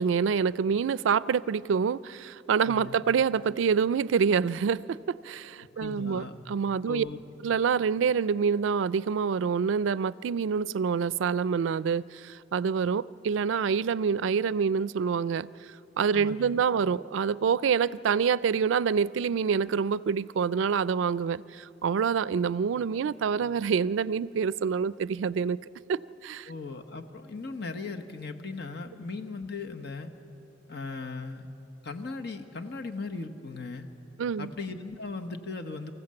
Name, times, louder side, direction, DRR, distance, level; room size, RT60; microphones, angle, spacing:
voice 1, 0.0-7.1 7.4-15.5 16.0-25.6 25.9-26.5 34.2-34.5, right 6 dB, 85° right, 0.4 m, -26 dB
voice 2, 2.6-3.0 5.8-6.4 6.9-7.2 16.1-16.6 26.5-30.1 30.7-31.5 31.8-33.9 34.4-35.9, left 3 dB, 60° left, 1.2 m, -38 dB
24.5 x 15.0 x 7.7 m
head